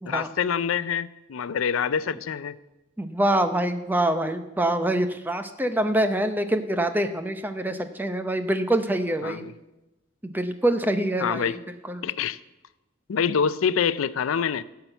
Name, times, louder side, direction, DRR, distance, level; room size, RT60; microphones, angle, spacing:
voice 1, 0.1-2.6 9.2-9.5 11.2-11.6 12.0-12.4 13.1-14.6, left 7 dB, 85° left, 16 dB, 0.4 m, -26 dB
voice 2, 3.0-9.4 10.2-11.6 11.8-12.0, right 1 dB, 10° right, 8 dB, 0.7 m, -25 dB
16.0 x 5.7 x 7.9 m, 1.0 s
head